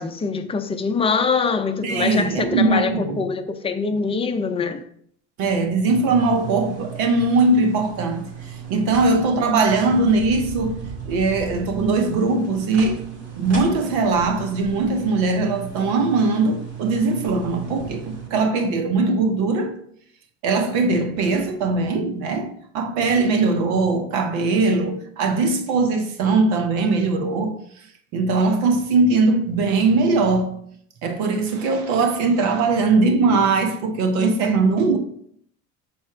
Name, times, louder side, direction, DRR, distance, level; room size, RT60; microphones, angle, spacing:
voice 1, 0.0-4.8, left 5 dB, 15° left, 0.6 m, -24 dB
voice 2, 1.8-3.3 5.4-8.3 8.7-13.1 13.4-19.7 20.4-27.6 28.1-30.6 31.0-35.0, right 3 dB, 70° right, 1.1 m, -20 dB
sound 1, 5.9-18.3, right 6 dB, 40° right, 2.2 m, -36 dB
6.3 x 4.3 x 3.6 m
hypercardioid pair, 75°, 40 cm